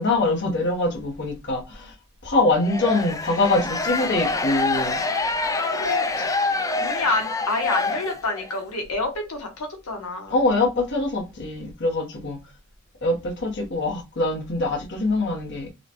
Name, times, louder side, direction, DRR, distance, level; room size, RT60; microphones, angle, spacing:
voice 1, 0.0-1.9 2.2-5.0 10.3-12.4 13.0-15.7, left 2 dB, 55° left, 1.0 m, -24 dB
sound 1, 2.6-8.5, left 3 dB, 15° left, 0.3 m, -26 dB
voice 2, 5.7-6.0 6.8-10.3, left 2 dB, 80° left, 1.0 m, -27 dB
5.5 x 2.2 x 3.0 m
head